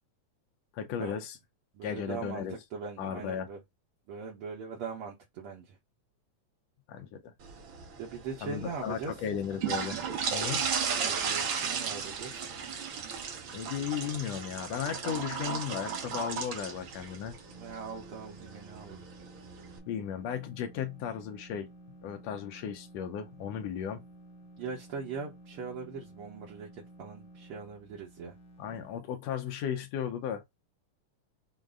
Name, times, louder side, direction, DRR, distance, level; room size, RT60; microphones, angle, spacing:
voice 1, 0.7-1.4 1.8-2.6 3.0-3.5 6.9-7.3 8.4-10.0 10.3-10.7 13.5-17.4 19.9-21.7 22.0-24.0 28.6-30.6, left 8 dB, 70° left, 1.7 m, -35 dB
voice 2, 1.7-3.6 4.1-5.8 8.0-9.1 11.0-12.4 17.6-19.0 24.6-28.3, right 5 dB, 60° right, 1.6 m, -41 dB
sound 1, 7.4-19.8, right 6 dB, 75° right, 1.1 m, -36 dB
sound 2, 17.2-29.0, right 1 dB, 45° left, 1.5 m, -53 dB
6.4 x 2.2 x 3.6 m
omnidirectional pair, 3.6 m